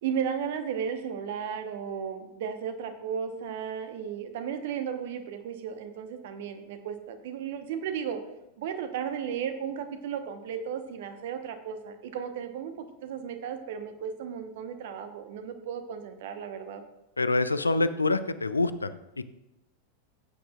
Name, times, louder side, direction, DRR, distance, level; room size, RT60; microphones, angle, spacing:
voice 1, 0.0-8.2 8.6-16.8, right 7 dB, 55° right, 8 dB, 1.1 m, -34 dB
voice 2, 17.2-19.0, left 2 dB, 80° left, 14 dB, 0.5 m, -26 dB
15.0 x 8.7 x 2.4 m, 0.92 s
figure-of-eight pair, 90°, 0 cm